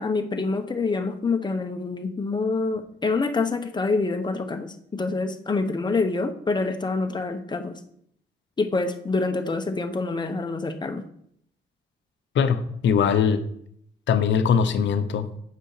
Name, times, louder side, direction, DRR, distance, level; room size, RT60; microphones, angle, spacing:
voice 1, 0.0-7.8 8.6-11.0, left 3 dB, 20° left, 6 dB, 1.0 m, -26 dB
voice 2, 12.3-13.4 14.1-15.3, left 7 dB, 70° left, 10 dB, 0.9 m, -21 dB
8.0 x 5.4 x 4.9 m, 0.68 s
cardioid pair, 90°, 20 cm